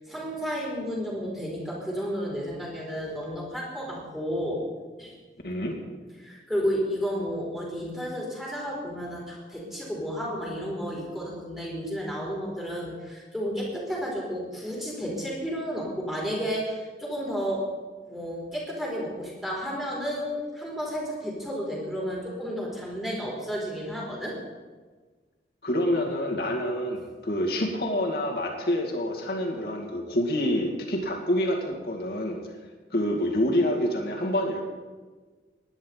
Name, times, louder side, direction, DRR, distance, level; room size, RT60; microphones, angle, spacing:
voice 1, 0.0-4.6 5.0-5.1 6.2-17.6 18.1-24.3, equal, ahead, -4 dB, 4.0 m, -32 dB
voice 2, 5.4-5.8 25.6-32.4 32.9-34.6, left 1 dB, 55° left, 0 dB, 2.5 m, -27 dB
19.0 x 11.0 x 4.1 m, 1.4 s
head